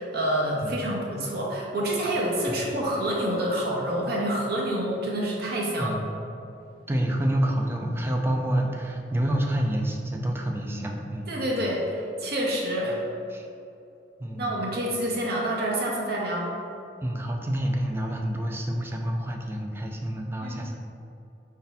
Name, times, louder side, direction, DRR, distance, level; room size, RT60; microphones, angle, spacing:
voice 1, 0.0-6.0 11.3-13.0 14.3-16.5 20.4-20.7, right 1 dB, 65° right, -3 dB, 0.9 m, -27 dB
voice 2, 5.8-6.1 6.9-11.3 13.3-13.5 14.2-14.6 17.0-20.7, right 1 dB, 15° right, 1 dB, 0.4 m, -28 dB
4.5 x 2.8 x 4.0 m, 2.7 s
head